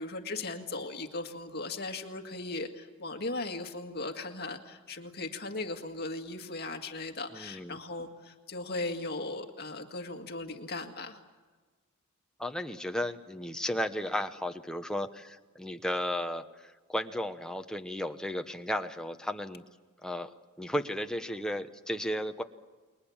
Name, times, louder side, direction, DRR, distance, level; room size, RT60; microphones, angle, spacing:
voice 1, 0.0-11.2, left 2 dB, 45° left, 4 dB, 2.0 m, -38 dB
voice 2, 7.3-7.8 12.4-19.6 20.0-22.4, left 1 dB, 5° left, 6 dB, 1.0 m, -34 dB
29.5 x 22.0 x 7.3 m, 1.3 s
head